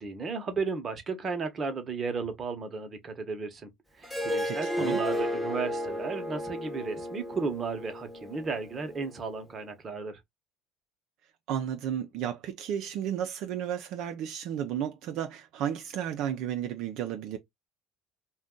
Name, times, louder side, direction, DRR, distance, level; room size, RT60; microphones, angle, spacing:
voice 1, 0.0-3.7 4.0-10.2, right 4 dB, 30° right, 0.9 m, -34 dB
Harp, 4.0-9.2, equal, 5° left, 1.0 m, -33 dB
voice 2, 4.5-5.0 11.5-17.4, right 9 dB, 65° right, 0.5 m, -33 dB
2.5 x 2.3 x 3.7 m
supercardioid pair, 105°, 0 cm